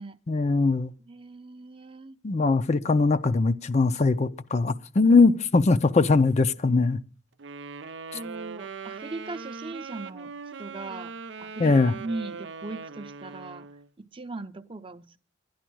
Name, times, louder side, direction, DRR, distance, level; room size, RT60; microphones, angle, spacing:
voice 1, 0.3-0.9 2.2-7.0 11.6-11.9, left 3 dB, 40° left, 0.5 m, -21 dB
voice 2, 1.1-2.2 8.1-10.3 10.6-11.1 11.4-13.7 14.0-15.2, right 3 dB, 30° right, 0.6 m, -39 dB
Wind instrument woodwind instrument, 7.4-13.9, right 5 dB, 90° right, 0.6 m, -40 dB
12.5 x 10.0 x 6.1 m
head